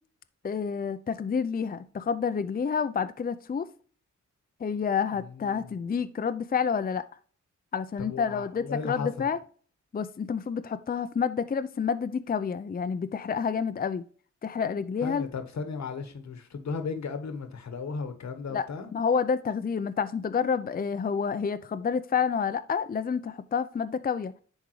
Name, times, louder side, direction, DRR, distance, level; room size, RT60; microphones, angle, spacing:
voice 1, 0.4-3.7 4.6-7.0 7.7-9.4 9.9-14.0 14.4-15.3 18.5-18.7 18.9-24.3, left 6 dB, 30° left, 0.5 m, -29 dB
voice 2, 5.2-5.8 8.0-9.3 15.0-18.9, left 5 dB, 60° left, 1.3 m, -35 dB
10.5 x 3.7 x 3.1 m
cardioid pair, 65°, 31 cm